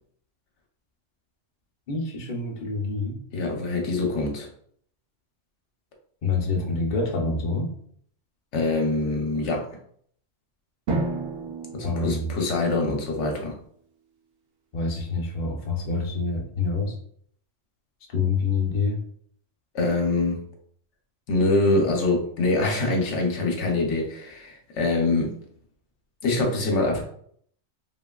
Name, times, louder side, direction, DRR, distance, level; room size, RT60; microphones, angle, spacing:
voice 1, 1.9-3.2 6.2-7.7 11.8-12.3 14.7-17.0 18.1-19.0, left 4 dB, 50° left, 0 dB, 0.6 m, -26 dB
voice 2, 3.3-4.5 8.5-9.7 11.7-13.5 19.7-20.4 21.3-25.4 26.2-27.0, left 2 dB, 70° left, 1 dB, 0.9 m, -24 dB
Drum, 10.9-13.4, right 3 dB, 65° right, 0.8 m, -32 dB
2.9 x 2.5 x 2.3 m, 0.62 s
omnidirectional pair, 1.3 m